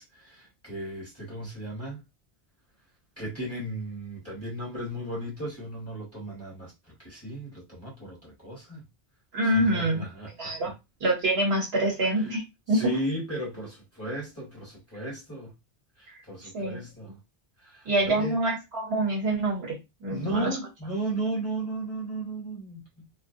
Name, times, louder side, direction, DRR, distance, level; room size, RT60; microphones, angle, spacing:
voice 1, 0.0-2.0 3.2-8.8 9.4-10.7 12.0-12.4 12.7-15.5 16.0-17.2 17.6-18.4 20.1-23.2, right 1 dB, 15° left, 1.0 m, -35 dB
voice 2, 9.3-10.0 10.4-10.7 11.0-12.4 12.7-12.8 16.1-16.2 16.5-16.8 17.8-20.5, right 1 dB, 70° right, 1.2 m, -26 dB
2.4 x 2.1 x 2.6 m
omnidirectional pair, 1.1 m